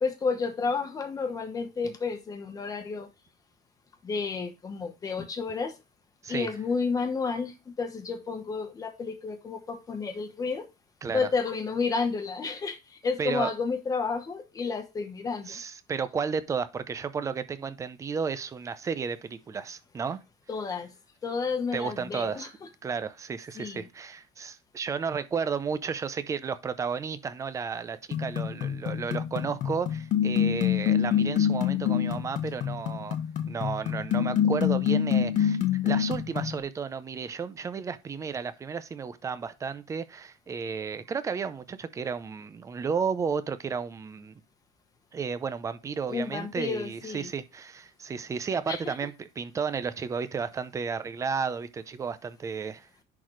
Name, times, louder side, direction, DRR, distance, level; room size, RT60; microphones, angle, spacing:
voice 1, 0.0-3.1 4.0-5.7 6.3-10.6 11.1-12.8 13.0-15.6 20.5-20.9 21.2-22.5 23.6-23.9 46.1-47.3 48.7-48.9, left 4 dB, 20° left, 1.1 m, -31 dB
voice 2, 13.2-13.5 15.5-20.2 21.7-22.5 22.8-33.2 33.4-44.4 45.1-52.9, right 6 dB, 20° right, 0.5 m, -33 dB
sound 1, 28.1-36.6, left 9 dB, 50° left, 1.0 m, -26 dB
10.5 x 4.1 x 3.1 m
cardioid pair, 175°, 17 cm